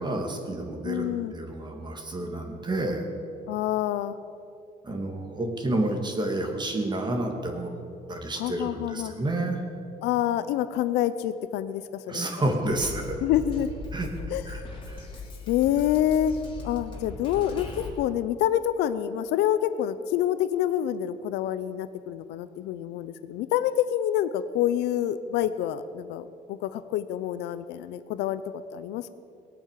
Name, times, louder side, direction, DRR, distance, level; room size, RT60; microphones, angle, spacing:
voice 1, 0.0-1.1 1.3-3.1 4.8-7.7 8.1-9.6 12.1-13.2 13.9-14.1 14.5-14.6 14.9-15.0, right 1 dB, 25° right, 3 dB, 2.4 m, -29 dB
voice 2, 0.8-1.3 3.5-4.2 8.4-9.1 10.0-12.3 13.2-13.7 14.3-14.7 15.5-16.4 16.6-17.7 18.0-28.4 28.7-29.1, left 11 dB, 85° left, 13 dB, 0.6 m, -27 dB
Drum kit, 12.7-17.9, left 3 dB, 30° left, 2.9 m, -39 dB
19.5 x 8.7 x 7.5 m, 2.5 s
cardioid pair, 110°, 17 cm